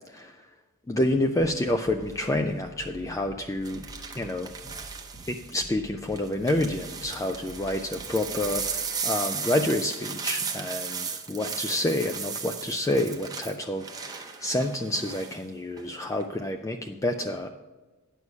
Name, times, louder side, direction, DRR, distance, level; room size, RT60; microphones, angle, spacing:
voice 1, 0.9-3.8 4.2-4.5 5.3-17.5, left 1 dB, 15° left, 6 dB, 0.4 m, -28 dB
sound 1, 1.4-8.9, right 2 dB, 55° left, 1.9 m, -48 dB
sound 2, 2.0-2.3 3.6-5.6 6.1-15.4 15.8-16.2, right 6 dB, 15° right, 0.7 m, -35 dB
9.5 x 6.3 x 5.4 m, 1.2 s
head